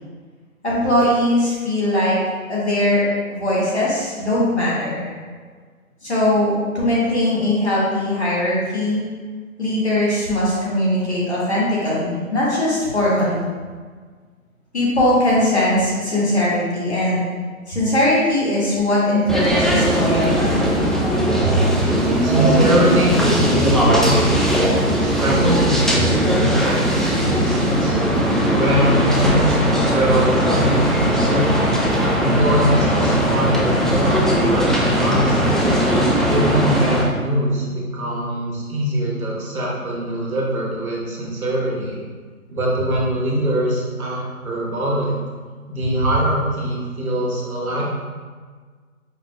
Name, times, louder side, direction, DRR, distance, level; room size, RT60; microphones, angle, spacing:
voice 1, 0.6-2.2 2.5-5.1 6.0-9.0 9.6-13.4 14.7-17.2 17.7-20.7 21.4-21.5, left 1 dB, 50° left, -7 dB, 1.4 m, -20 dB
sound 1, 19.3-37.0, equal, ahead, 0.3 m, -19 dB
voice 2, 22.2-28.0 28.5-31.6 32.2-35.6 36.3-42.0 42.5-45.2 45.7-47.8, equal, 75° right, -4 dB, 1.4 m, -22 dB
5.0 x 2.4 x 3.2 m, 1.5 s
hypercardioid pair, 180°, 43 cm